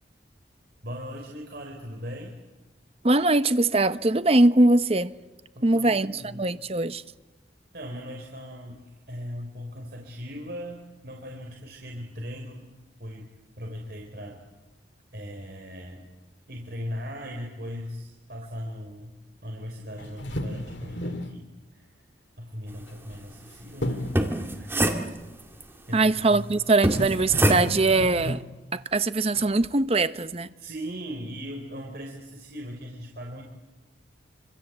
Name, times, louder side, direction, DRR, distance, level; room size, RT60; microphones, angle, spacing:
voice 1, 0.8-2.4 5.6-6.4 7.7-12.7 13.0-14.4 15.1-16.0 16.5-19.2 19.4-22.0 22.4-24.1 24.5-24.7 25.9-26.5 30.6-33.4, equal, 55° right, 3.7 m, -39 dB
voice 2, 3.0-5.1 5.6-7.0 25.9-28.4 28.7-30.5, right 2 dB, 35° right, 0.9 m, -22 dB
sound 1, 20.0-21.4 22.9-23.5 23.8-24.3 26.4-26.5 26.8-28.5 29.4-29.7, left 1 dB, 80° left, 2.2 m, -34 dB
sound 2, 24.0-25.6 26.8-28.0, right 1 dB, 15° right, 2.1 m, -25 dB
26.0 x 26.0 x 8.0 m
head